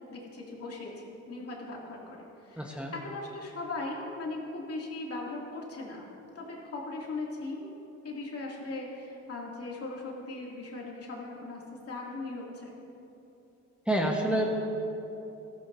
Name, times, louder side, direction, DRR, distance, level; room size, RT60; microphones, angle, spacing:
voice 1, 0.1-12.7, left 2 dB, 50° left, -3 dB, 2.7 m, -39 dB
voice 2, 2.6-2.9 13.9-14.6, right 1 dB, 5° right, -1 dB, 1.2 m, -28 dB
14.5 x 14.5 x 2.7 m, 3.0 s
cardioid pair, 90°, 30 cm